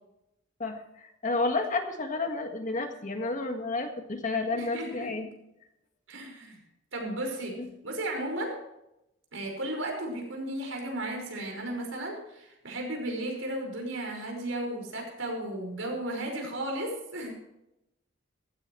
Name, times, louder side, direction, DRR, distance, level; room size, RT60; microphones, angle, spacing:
voice 1, 0.6-5.3 7.6-7.7, left 3 dB, 40° left, 5 dB, 1.7 m, -31 dB
voice 2, 4.5-5.1 6.1-6.6 6.9-8.6 9.3-17.3, right 1 dB, 75° right, 1 dB, 5.3 m, -34 dB
15.5 x 15.5 x 3.2 m, 0.87 s
head